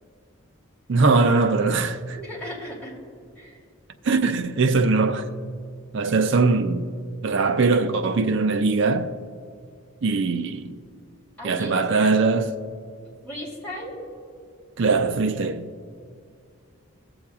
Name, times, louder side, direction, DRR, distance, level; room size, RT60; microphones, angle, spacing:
voice 1, 0.9-2.2 4.0-5.3 5.9-6.9 7.2-9.2 10.0-10.8 11.4-12.5 14.8-15.7, right 4 dB, 55° right, 0.4 m, -21 dB
voice 2, 2.1-2.9 3.3-3.6 11.4-12.1 13.2-13.9, equal, 5° left, 2.8 m, -36 dB
21.0 x 7.1 x 2.4 m
head